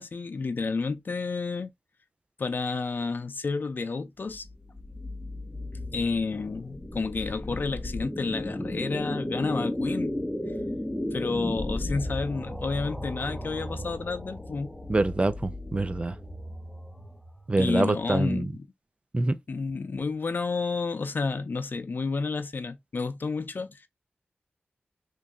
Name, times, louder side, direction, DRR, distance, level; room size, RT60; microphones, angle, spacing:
voice 1, 0.0-1.7 2.4-4.5 5.9-10.1 11.1-14.7 17.6-18.7 19.5-23.9, left 4 dB, 60° left, 0.6 m, -30 dB
sound 1, 4.3-17.5, left 1 dB, 5° left, 0.7 m, -34 dB
voice 2, 14.9-16.1 17.5-18.5 19.1-19.4, right 2 dB, 30° right, 0.4 m, -25 dB
3.0 x 2.7 x 3.6 m
wide cardioid pair, 80°, 4 cm